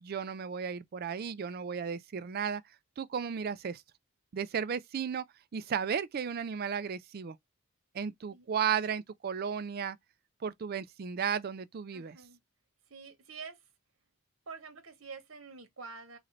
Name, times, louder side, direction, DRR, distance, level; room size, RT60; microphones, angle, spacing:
voice 1, 0.0-2.6 3.0-3.8 4.3-5.2 5.5-7.4 7.9-10.0 10.4-12.2, right 7 dB, 45° right, 0.4 m, -34 dB
voice 2, 11.9-12.4 12.9-13.6 14.5-16.2, right 5 dB, 70° right, 1.0 m, -47 dB
3.9 x 2.6 x 3.2 m
head